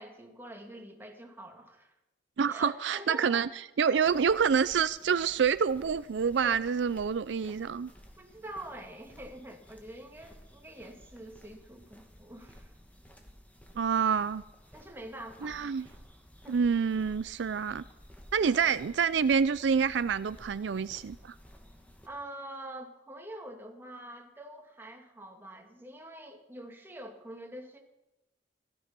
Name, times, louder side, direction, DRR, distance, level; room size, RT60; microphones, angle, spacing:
voice 1, 0.0-1.9 2.5-3.5 3.9-4.2 6.4-6.6 7.2-7.3 8.2-12.7 14.7-15.8 16.4-16.6 18.5-18.6 22.0-27.8, right 1 dB, 10° right, 1 dB, 2.4 m, -45 dB
voice 2, 2.4-3.5 3.8-7.9 13.8-14.4 15.4-15.9 16.5-17.8 18.3-21.3, right 6 dB, 75° right, 16 dB, 0.4 m, -27 dB
sound 1, 3.9-22.1, equal, 10° left, 1.9 m, -55 dB
16.5 x 13.0 x 6.0 m, 0.92 s
head